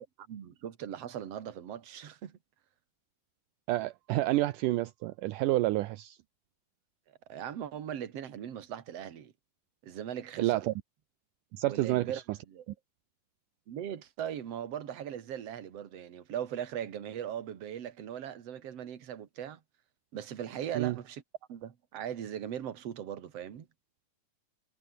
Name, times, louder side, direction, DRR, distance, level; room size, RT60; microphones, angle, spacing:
voice 1, 0.0-2.4 7.3-9.3 9.8-10.7 11.7-12.7 13.7-19.6 20.1-21.2 21.5-23.7, right 9 dB, 50° right, 2.7 m, -39 dB
voice 2, 3.7-6.2 10.4-10.7 11.5-12.2 20.8-21.0, right 17 dB, 75° right, 2.2 m, -29 dB
omnidirectional pair, 4.0 m